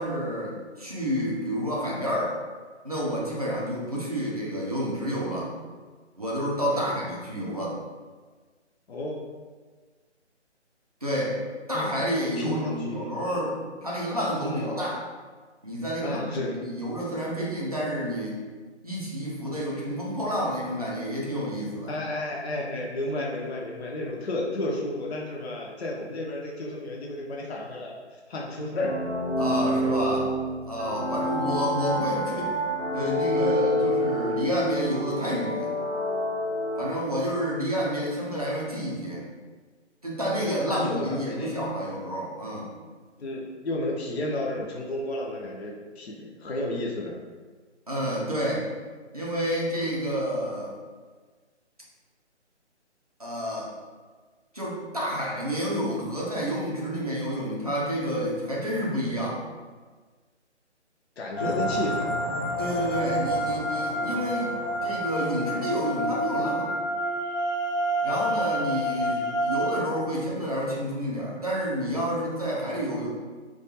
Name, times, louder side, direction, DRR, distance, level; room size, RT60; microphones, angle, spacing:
voice 1, 0.0-2.4 2.8-5.5 6.2-7.8 11.0-11.4 11.7-15.0 15.6-18.4 18.8-21.9 29.4-30.3 30.7-32.6 32.9-35.7 36.8-39.3 40.0-42.7 47.9-48.7 49.1-50.7 53.2-53.7 54.5-59.4 61.4-61.6 62.6-64.5 64.8-66.7 68.0-73.1, equal, 35° right, -5 dB, 0.4 m, -29 dB
voice 2, 8.9-9.2 11.7-12.0 12.4-13.4 14.4-14.7 16.0-16.5 21.9-29.0 31.4-31.5 40.4-41.5 43.2-47.1 61.2-62.1, left 1 dB, 60° left, -2 dB, 0.5 m, -32 dB
sound 1, 28.8-37.4, equal, 85° left, 0.8 m, -28 dB
sound 2, 61.4-69.7, equal, 20° left, 0.6 m, -28 dB
2.3 x 2.2 x 2.8 m, 1.4 s
figure-of-eight pair, 150°, 36 cm